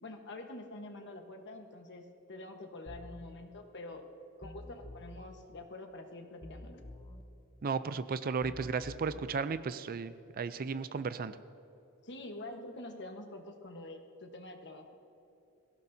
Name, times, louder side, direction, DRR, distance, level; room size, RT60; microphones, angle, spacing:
voice 1, 0.0-4.1 4.4-6.8 12.0-14.9, left 2 dB, 55° left, 4 dB, 1.3 m, -46 dB
sound 1, 2.9-3.2 4.4-5.2 6.4-7.2 8.4-9.2, left 1 dB, 20° left, 0.9 m, -48 dB
voice 2, 7.6-11.4, right 5 dB, 40° right, 13 dB, 0.4 m, -35 dB
22.5 x 16.0 x 2.7 m, 3.0 s
head